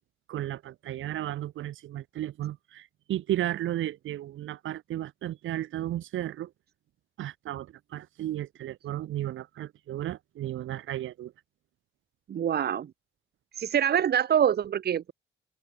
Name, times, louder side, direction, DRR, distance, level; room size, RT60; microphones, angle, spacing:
voice 1, 0.3-6.5 7.2-11.3, right 13 dB, 80° right, 6.8 m, -34 dB
voice 2, 12.3-12.9 13.5-15.1, right 9 dB, 55° right, 1.2 m, -25 dB
open air
cardioid pair, 90°, 20 cm